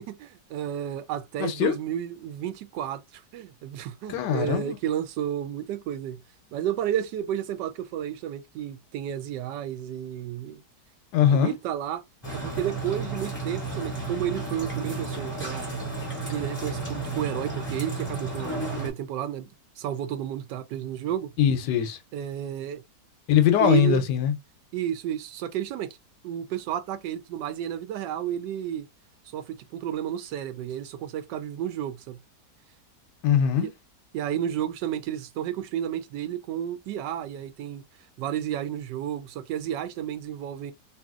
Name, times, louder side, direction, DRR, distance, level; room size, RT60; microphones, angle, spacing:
voice 1, 0.0-6.2 6.5-10.6 11.2-12.0 12.3-15.7 16.2-19.5 19.8-21.3 22.1-22.8 23.6-24.1 24.7-26.0 26.2-28.9 29.3-32.2 33.6-33.7 34.1-37.8 38.2-40.7, right 10 dB, 85° right, 1.2 m, -31 dB
voice 2, 1.4-1.7 4.1-4.8 11.1-11.5 21.4-22.0 23.3-24.3 33.2-33.7, left 9 dB, 80° left, 1.2 m, -22 dB
sound 1, 12.2-18.9, right 3 dB, 10° left, 1.8 m, -32 dB
2.9 x 2.7 x 2.3 m
omnidirectional pair, 1.8 m